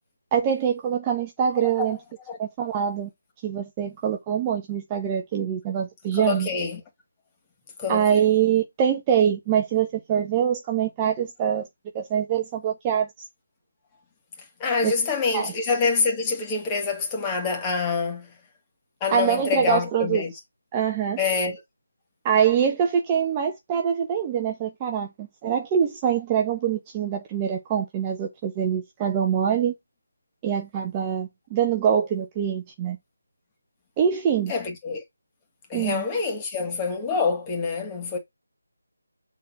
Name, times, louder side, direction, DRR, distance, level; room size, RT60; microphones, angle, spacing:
voice 1, 0.3-2.0 2.4-3.1 3.4-6.5 7.9-11.7 11.9-13.1 14.8-14.9 15.3-15.5 19.1-20.2 20.7-21.2 22.2-29.7 30.4-33.0 34.0-34.5 35.7-36.0, right 8 dB, 15° right, 1.1 m, -24 dB
voice 2, 6.1-6.8 7.8-8.2 14.6-18.3 19.0-20.3 21.2-21.6 34.5-35.0 35.7-38.2, left 5 dB, 15° left, 2.3 m, -26 dB
7.4 x 4.3 x 6.0 m
figure-of-eight pair, 160°, 0 cm